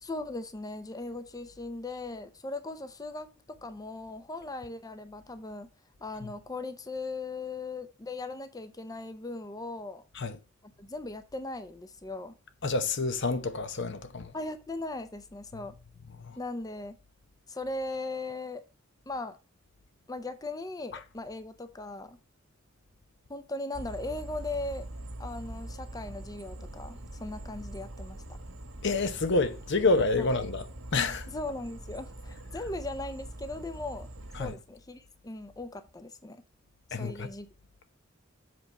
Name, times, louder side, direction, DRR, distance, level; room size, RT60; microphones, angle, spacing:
voice 1, 0.0-5.7 6.0-10.0 10.6-12.3 14.3-15.7 16.4-16.9 17.5-18.6 19.1-19.4 20.1-22.2 23.3-24.9 25.2-28.2 30.2-30.3 31.3-34.1 34.4-36.4 37.0-37.5, left 2 dB, 20° left, 0.6 m, -38 dB
voice 2, 12.6-14.3 16.3-16.4 28.8-30.7 30.9-31.3 34.4-34.5 36.9-37.3, left 3 dB, 65° left, 0.8 m, -28 dB
sound 1, 23.7-34.5, right 1 dB, 85° right, 1.7 m, -43 dB
7.7 x 4.5 x 5.4 m
head